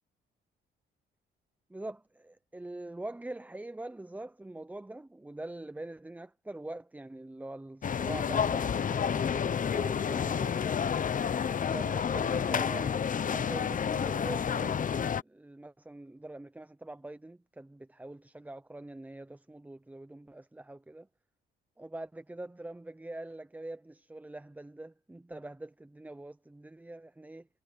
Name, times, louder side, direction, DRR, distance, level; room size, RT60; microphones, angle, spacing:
voice 1, 1.7-10.8 11.6-21.1 21.8-27.5, right 2 dB, 10° right, 0.6 m, -44 dB
sound 1, 7.8-15.2, left 7 dB, 40° left, 0.9 m, -30 dB
cardioid pair, 90°, 20 cm